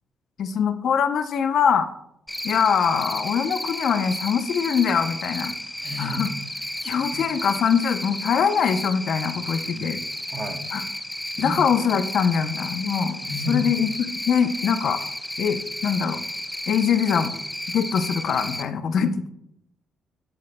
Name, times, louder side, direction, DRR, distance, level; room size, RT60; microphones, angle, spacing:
voice 1, 0.4-1.9 2.4-5.5 6.0-6.3 6.8-10.0 10.7-10.8 11.4-13.2 13.5-13.9 14.3-15.0 15.4-16.2 16.7-17.3 17.7-19.3, left 7 dB, 65° left, 10 dB, 0.6 m, -23 dB
Cricket, 2.3-18.6, left 1 dB, 5° left, 0.6 m, -33 dB
voice 2, 5.8-6.3 7.1-7.2 9.7-10.0 10.3-10.7 11.4-11.6 13.2-13.7, left 1 dB, 40° right, 6 dB, 1.1 m, -31 dB
10.5 x 8.2 x 2.2 m, 0.76 s
cardioid pair, 90°, 0 cm